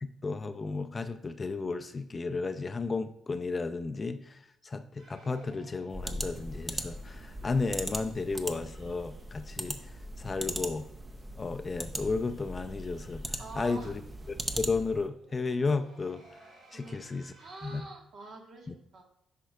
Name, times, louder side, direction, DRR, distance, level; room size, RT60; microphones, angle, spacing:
voice 1, 0.0-10.9 11.4-14.0 14.3-16.2 16.7-17.3 17.6-17.8 18.7-18.8, left 4 dB, 30° left, 10 dB, 0.4 m, -33 dB
sound 1, 5.0-10.1 10.3-10.4 10.7-10.8 11.1-17.8, right 1 dB, 85° right, 1.7 m, -60 dB
sound 2, 5.9-15.1, right 1 dB, 20° right, 0.6 m, -39 dB
voice 2, 13.4-13.9 16.7-19.0, right 3 dB, 65° right, 1 dB, 1.4 m, -46 dB
10.0 x 4.5 x 2.3 m, 0.79 s
cardioid pair, 90°, 0 cm